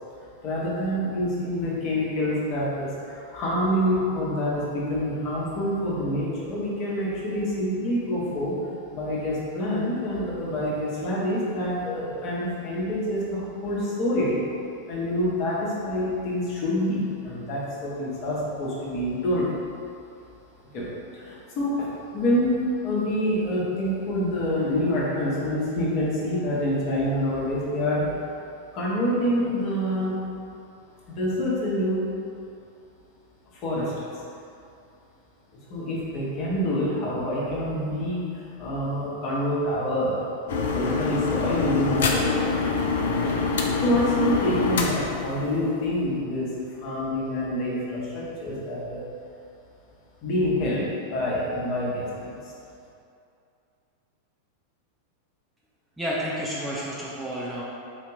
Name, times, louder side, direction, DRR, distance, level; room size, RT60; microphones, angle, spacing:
voice 1, 0.4-8.5 8.9-14.4 14.9-19.5 20.7-20.9 21.1-28.2 28.7-30.2 31.1-32.0 33.6-34.1 35.7-40.3 40.7-42.7 43.0-49.0 50.2-50.8 51.1-52.3, equal, 40° left, -6 dB, 1.2 m, -27 dB
sound 1, 40.5-46.0, left 4 dB, 60° left, 0.4 m, -25 dB
voice 2, 56.0-57.6, equal, 5° right, -7 dB, 0.6 m, -30 dB
4.3 x 2.9 x 3.6 m, 2.6 s
figure-of-eight pair, 90°, 0 cm